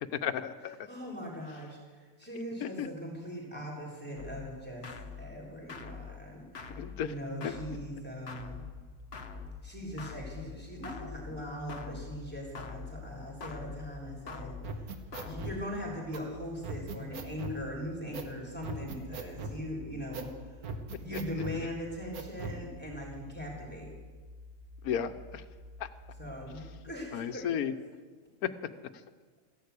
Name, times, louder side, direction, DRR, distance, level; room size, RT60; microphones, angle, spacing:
voice 1, 0.1-0.9 2.6-2.9 6.7-7.1 7.4-7.5 21.1-21.2 24.8-25.4 25.8-25.9 27.1-27.7 28.4-28.5, left 9 dB, 85° left, 12 dB, 1.3 m, -33 dB
voice 2, 0.9-4.9 5.2-6.7 7.0-8.7 9.6-14.5 15.2-20.3 21.0-24.0 26.2-27.7, equal, 5° left, -2 dB, 3.6 m, -40 dB
sound 1, 4.2-15.9, left 5 dB, 50° left, 1.2 m, -46 dB
sound 2, 8.3-26.9, left 2 dB, 40° right, 1.9 m, -51 dB
sound 3, 14.6-15.6 16.1-16.2 16.6-17.6 18.1-18.3 18.6-19.6 20.1-20.3 20.6-21.6 22.1-22.6, right 4 dB, 90° right, 1.7 m, -39 dB
15.0 x 11.5 x 8.3 m, 1.4 s
omnidirectional pair, 1.5 m